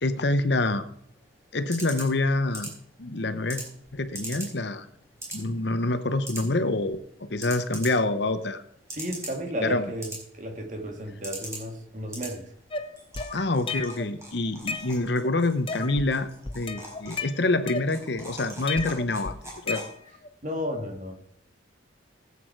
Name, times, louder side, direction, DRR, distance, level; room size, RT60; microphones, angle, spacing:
voice 1, 0.0-0.8 1.5-2.7 3.0-3.6 3.9-4.9 5.3-7.0 7.3-8.6 9.6-9.8 13.3-19.4 19.6-19.8, left 2 dB, 60° left, 11 dB, 0.9 m, -26 dB
sound 1, 0.9-20.2, right 2 dB, 15° right, 4.4 m, -43 dB
voice 2, 8.9-12.5 20.4-21.1, equal, 40° right, 3 dB, 2.3 m, -33 dB
sound 2, 12.7-14.1 14.5-15.3 15.7-16.1 16.5-18.2 18.7-20.3, left 4 dB, 25° left, 0.8 m, -34 dB
18.5 x 8.5 x 4.6 m, 0.70 s
head